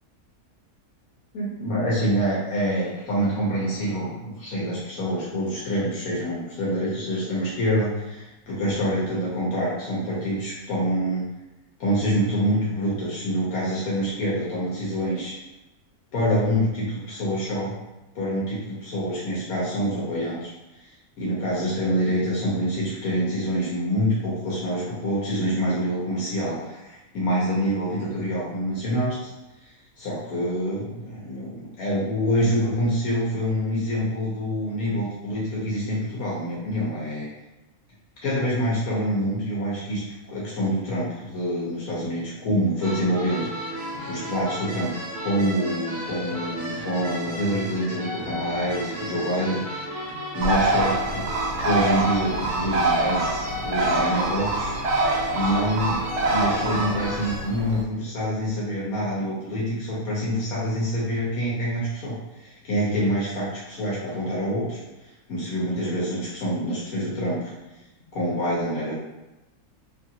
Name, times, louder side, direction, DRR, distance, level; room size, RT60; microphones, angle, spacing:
voice 1, 1.3-11.3 11.8-15.3 16.1-17.7 18.1-20.5 20.8-20.9 21.2-29.3 29.6-29.7 30.0-37.3 38.2-40.0 40.3-43.5 44.1-49.9 50.3-51.3 51.6-54.7 55.3-64.8 65.3-67.5 68.1-69.0, equal, 70° left, -6 dB, 1.2 m, -26 dB
sound 1, 42.8-57.4, equal, 50° right, 1.1 m, -34 dB
Bird, 50.4-57.8, right 2 dB, 85° right, 1.1 m, -25 dB
3.0 x 2.4 x 2.7 m, 1.0 s
omnidirectional pair, 1.6 m